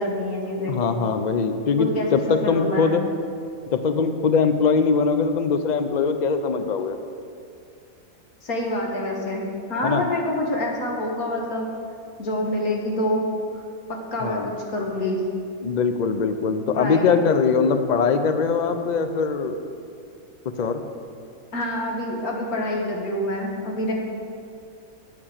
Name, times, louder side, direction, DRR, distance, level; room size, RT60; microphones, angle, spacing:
voice 1, 0.0-0.8 1.8-3.0 8.4-11.7 12.2-13.2 14.1-15.3 16.7-17.1 21.5-23.9, left 1 dB, 80° left, 0 dB, 2.0 m, -26 dB
voice 2, 0.7-3.0 3.7-7.0 9.8-10.0 14.2-14.5 15.6-19.6 20.6-20.8, left 5 dB, 55° left, 8 dB, 0.5 m, -22 dB
8.9 x 8.9 x 6.5 m, 2.4 s
omnidirectional pair, 1.5 m